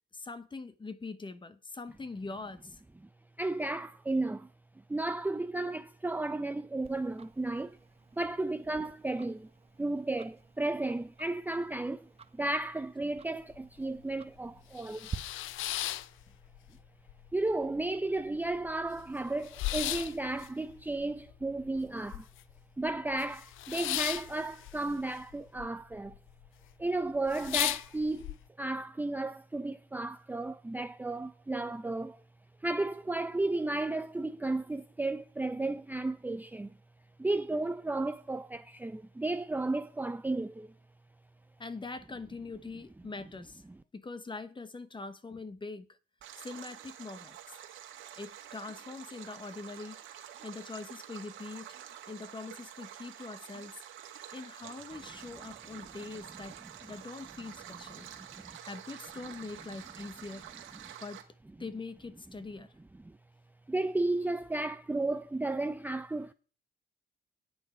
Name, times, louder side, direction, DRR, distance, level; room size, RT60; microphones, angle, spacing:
voice 1, 0.1-2.8 41.6-43.6 43.9-46.0 46.4-47.6 48.2-51.7 52.1-58.1 58.6-60.4 61.0-61.2 61.6-62.7, left 3 dB, 25° left, 1.0 m, -43 dB
voice 2, 3.4-4.5 4.9-7.8 8.1-9.5 9.8-15.1 17.3-22.3 22.8-26.1 26.8-32.2 32.6-36.7 37.2-40.7 63.1-63.2 63.7-66.3, right 2 dB, 10° right, 0.5 m, -33 dB
Tick-tock, 6.8-15.2, right 5 dB, 30° right, 0.9 m, -50 dB
sound 1, 13.5-13.6 14.0-14.1 14.6-16.8 17.1-17.8 18.2-18.3 18.4-22.6 22.9-25.7 25.9-26.5 26.9-27.0 27.3-28.3, left 14 dB, 85° left, 0.6 m, -36 dB
Stream, 46.2-61.2, right 10 dB, 85° right, 1.8 m, -48 dB
9.7 x 8.9 x 4.9 m
cardioid pair, 90°, 20 cm